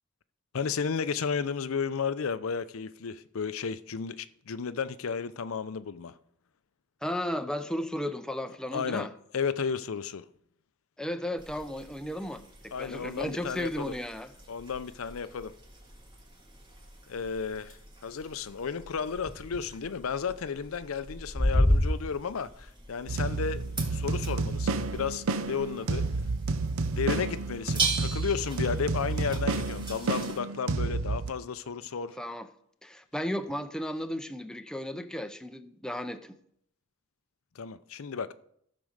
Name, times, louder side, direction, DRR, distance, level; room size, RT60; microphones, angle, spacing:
voice 1, 0.5-6.2 8.7-9.1 9.3-10.3 12.7-13.9 14.5-15.6 17.1-26.1 26.9-32.2 37.6-38.5, left 6 dB, 85° left, 0.5 m, -33 dB
voice 2, 7.0-9.1 11.0-14.3 32.2-32.5 32.8-36.3, equal, 5° left, 0.5 m, -34 dB
sound 1, 11.4-30.4, equal, 20° right, 2.0 m, -35 dB
sound 2, 23.1-31.3, right 3 dB, 85° right, 0.7 m, -30 dB
14.0 x 5.1 x 6.5 m
head